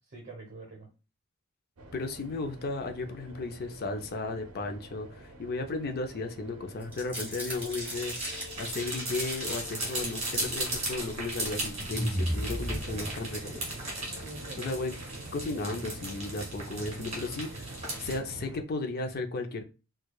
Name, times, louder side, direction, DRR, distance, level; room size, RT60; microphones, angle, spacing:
voice 1, 0.1-0.9 12.7-13.7 14.2-14.7, right 2 dB, 55° right, 0.9 m, -45 dB
sound 1, 1.8-18.6, right 2 dB, 85° right, 0.5 m, -46 dB
voice 2, 1.9-8.2 8.6-13.5 14.6-14.9 15.3-17.7 18.0-19.6, left 3 dB, 45° left, 0.5 m, -35 dB
sound 2, 6.8-9.5 9.9-10.7 11.2-11.5 11.8-13.5, equal, 10° right, 1.5 m, -35 dB
sound 3, 7.5-18.2, right 1 dB, 35° right, 1.7 m, -37 dB
4.6 x 2.3 x 2.3 m
head